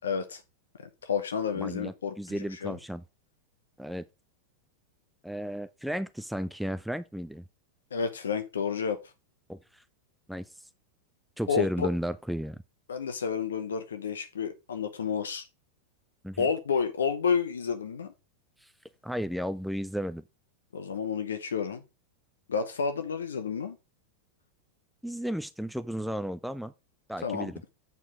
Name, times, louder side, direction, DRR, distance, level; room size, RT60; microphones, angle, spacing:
voice 1, 0.0-0.4 0.8-2.8 7.9-9.0 11.5-11.9 12.9-15.4 16.4-18.1 20.7-21.8 22.5-23.8 27.2-27.5, left 6 dB, 65° left, 0.7 m, -30 dB
voice 2, 1.6-3.0 3.8-4.0 5.2-7.4 9.5-9.8 10.3-10.7 11.4-12.6 16.2-16.5 18.6-18.7 19.0-20.2 25.0-26.7 27.1-27.6, equal, ahead, 0.4 m, -34 dB
8.3 x 4.6 x 4.9 m
figure-of-eight pair, 90°, 0 cm